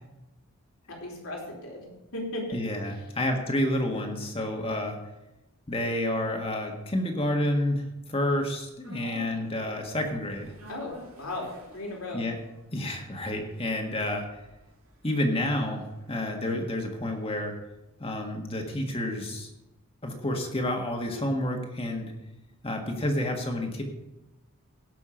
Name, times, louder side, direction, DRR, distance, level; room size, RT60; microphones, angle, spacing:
voice 1, 0.9-2.6 10.7-12.3, left 1 dB, 75° left, -1 dB, 3.4 m, -36 dB
voice 2, 2.5-5.0 5.7-10.5 12.1-12.4 12.7-14.2 15.0-17.5 18.0-19.5 20.0-22.1 22.6-23.8, left 1 dB, 25° left, 2 dB, 1.6 m, -29 dB
sound 1, 8.8-17.1 17.4-17.5, right 1 dB, 70° right, 2.5 m, -50 dB
17.5 x 6.1 x 5.0 m, 0.95 s
head